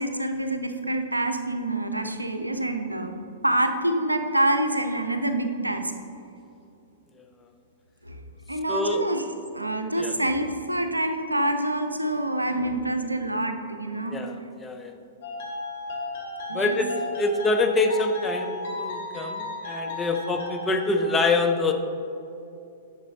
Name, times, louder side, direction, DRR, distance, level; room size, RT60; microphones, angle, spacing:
voice 1, 0.0-3.1 3.4-5.9 8.0-8.2 8.5-9.2 9.5-14.2 16.5-16.8 19.8-19.9, right 1 dB, 90° right, 6 dB, 0.6 m, -26 dB
voice 2, 8.7-9.0 10.0-10.2 14.1-14.9 16.5-21.7, left 3 dB, 15° left, 4 dB, 0.6 m, -25 dB
sound 1, 15.2-21.1, left 2 dB, 55° left, 1.9 m, -34 dB
10.5 x 6.6 x 2.8 m, 2.6 s
figure-of-eight pair, 105°, 0 cm